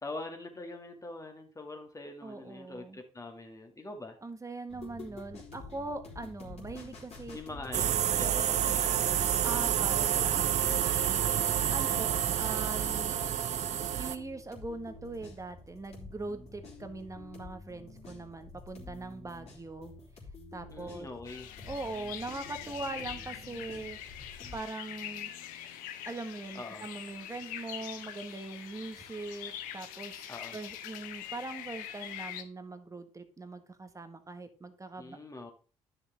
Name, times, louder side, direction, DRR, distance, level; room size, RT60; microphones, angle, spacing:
voice 1, 0.0-4.2 7.3-9.2 10.1-10.7 11.9-12.1 20.7-21.5 26.5-26.9 30.3-30.6 35.0-35.5, left 2 dB, 25° left, 4 dB, 2.2 m, -44 dB
voice 2, 2.2-3.0 4.2-7.4 9.4-11.3 11.7-13.1 13.9-19.9 20.5-21.1 21.7-24.0 24.5-25.3 26.1-30.3 30.5-35.2, right 2 dB, 20° right, 8 dB, 1.5 m, -41 dB
sound 1, 4.7-24.6, left 3 dB, 45° left, 3.4 m, -48 dB
sound 2, 7.7-14.2, right 10 dB, 55° right, 0.7 m, -28 dB
sound 3, 21.2-32.4, left 11 dB, 70° left, 0.9 m, -43 dB
10.5 x 6.5 x 3.5 m, 0.37 s
hypercardioid pair, 55°, 14 cm